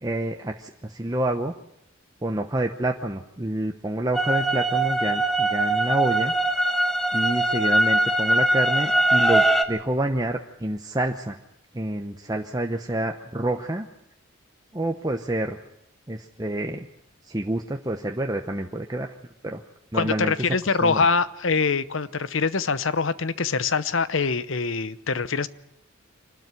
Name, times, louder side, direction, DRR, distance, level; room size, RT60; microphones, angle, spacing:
voice 1, 0.0-1.5 2.2-6.3 7.1-11.4 11.7-13.9 14.7-15.6 16.1-16.9 17.3-19.1 19.4-19.6 19.9-20.3 20.8-21.0, right 1 dB, 20° right, 3 dB, 0.9 m, -28 dB
sound 1, 4.1-9.6, right 1 dB, ahead, 1.3 m, -22 dB
voice 2, 19.9-25.5, left 4 dB, 70° left, 15 dB, 0.9 m, -24 dB
25.0 x 12.5 x 9.6 m, 0.79 s
head